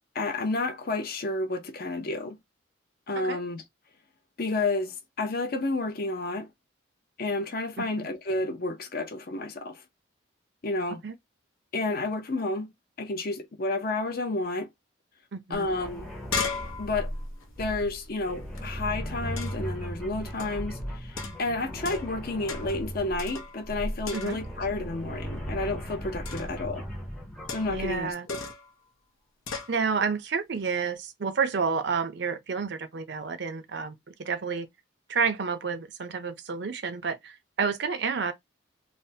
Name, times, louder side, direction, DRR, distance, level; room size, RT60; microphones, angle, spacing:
voice 1, 0.1-2.4 3.1-3.6 4.4-6.5 7.2-9.8 10.6-11.0 11.7-12.7 13.0-14.7 15.5-16.1 16.8-17.1 17.6-26.8 27.5-28.1, left 2 dB, 45° left, 0.5 m, -30 dB
voice 2, 7.8-8.1 11.0-11.1 15.3-15.7 24.1-24.4 27.7-28.3 29.7-34.7 35.1-38.3, right 5 dB, 55° right, 0.5 m, -30 dB
sound 1, 15.5-15.6 15.9-18.6 19.4-19.7 20.4-20.7 21.2-22.2 22.5-22.8 23.2-23.8 24.0-24.6 26.2-26.6 27.5-27.9 28.3-28.7 29.5-29.8, left 5 dB, 85° left, 0.8 m, -36 dB
sound 2, 15.6-28.1, equal, 5° left, 0.6 m, -37 dB
3.3 x 2.1 x 2.7 m
head